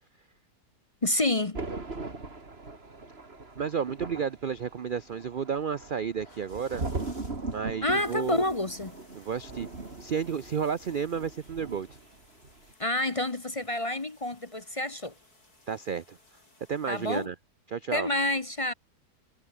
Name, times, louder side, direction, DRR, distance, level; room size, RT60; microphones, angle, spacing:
voice 1, 1.0-1.6 7.8-9.0 12.8-15.1 16.9-17.3 17.9-18.7, left 1 dB, 25° left, 0.9 m, -28 dB
Thunder, 1.5-12.1 12.4-12.7, right 3 dB, 35° right, 3.1 m, -40 dB
voice 2, 3.6-6.9 7.5-8.4 9.2-9.7 10.0-11.9 15.7-16.2 16.7-17.3 17.7-18.1, right 7 dB, 65° right, 0.5 m, -32 dB
sound 1, 6.2-17.3, left 2 dB, 65° left, 6.7 m, -59 dB
omnidirectional pair, 1.8 m